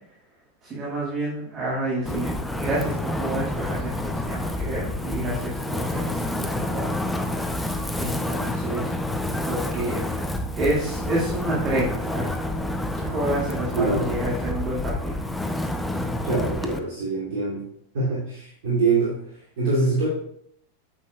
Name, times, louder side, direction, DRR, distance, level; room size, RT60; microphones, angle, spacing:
voice 1, 0.6-6.9 7.9-8.9 9.4-10.0 10.6-12.3 13.0-15.2, right 1 dB, 30° right, -6 dB, 2.1 m, -29 dB
Wind, 2.1-16.8, left 1 dB, 5° left, 0.6 m, -28 dB
voice 2, 13.7-14.1 16.2-17.6 17.9-20.1, right 3 dB, 55° right, -8 dB, 2.6 m, -24 dB
8.9 x 7.5 x 2.3 m, 0.69 s
figure-of-eight pair, 90°, 0 cm